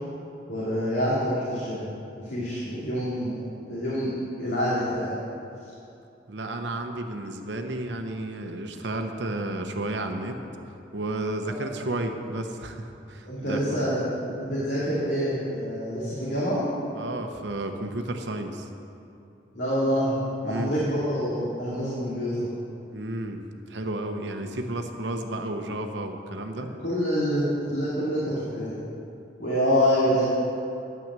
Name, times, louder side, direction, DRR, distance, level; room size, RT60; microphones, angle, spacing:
voice 1, 0.5-1.9 2.2-3.4 3.7-5.2 11.4-11.7 13.2-16.6 19.5-20.2 20.4-22.5 26.8-27.4 27.7-28.8 29.4-30.2, equal, 80° left, -9 dB, 2.5 m, -26 dB
voice 2, 6.3-10.4 10.9-13.8 17.0-18.7 20.4-20.7 22.9-23.4 23.7-26.7, right 1 dB, 80° right, 5 dB, 0.9 m, -32 dB
11.0 x 6.1 x 7.5 m, 2.7 s
head